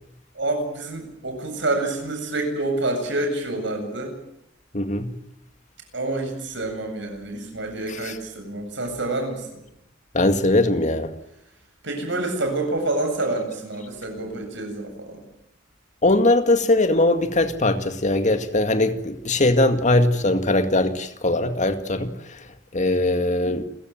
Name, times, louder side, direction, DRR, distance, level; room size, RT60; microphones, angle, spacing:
voice 1, 0.3-4.2 5.9-9.6 11.8-15.2, right 2 dB, 65° right, 8.0 m, -27 dB
voice 2, 4.7-5.1 10.1-11.1 16.0-22.1 22.7-23.6, left 2 dB, 40° left, 2.1 m, -20 dB
29.5 x 15.5 x 9.2 m
head